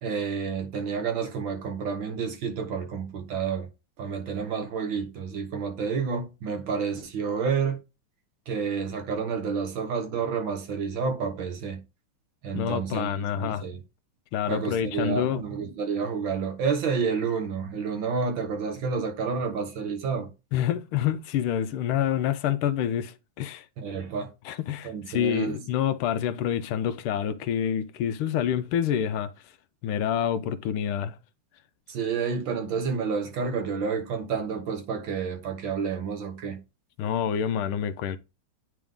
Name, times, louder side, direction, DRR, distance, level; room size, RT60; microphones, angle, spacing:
voice 1, 0.0-3.7 4.0-7.8 8.5-11.8 12.4-13.8 14.5-20.3 23.8-24.3 24.8-25.6 31.9-36.6, right 5 dB, 65° right, 1.9 m, -29 dB
voice 2, 12.5-13.6 14.3-15.4 20.5-23.7 24.4-29.3 29.8-31.2 37.0-38.2, left 9 dB, 80° left, 1.4 m, -27 dB
9.1 x 3.6 x 3.6 m
omnidirectional pair, 2.4 m